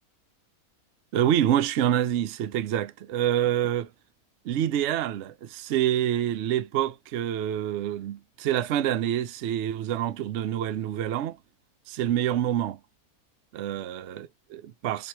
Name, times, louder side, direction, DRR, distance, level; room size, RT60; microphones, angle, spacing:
voice 1, 1.1-3.9 4.4-11.4 11.9-12.8 13.5-15.1, right 11 dB, 60° right, 0.8 m, -27 dB
3.8 x 2.9 x 4.3 m
omnidirectional pair, 1.5 m